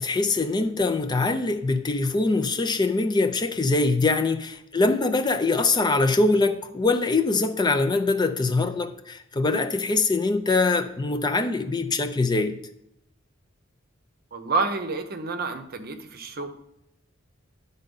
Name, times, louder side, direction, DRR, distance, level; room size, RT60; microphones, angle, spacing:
voice 1, 0.0-12.6, left 3 dB, 20° left, 8 dB, 0.4 m, -23 dB
voice 2, 14.3-16.5, right 4 dB, 50° right, 8 dB, 0.8 m, -29 dB
10.5 x 4.0 x 5.3 m, 0.81 s
head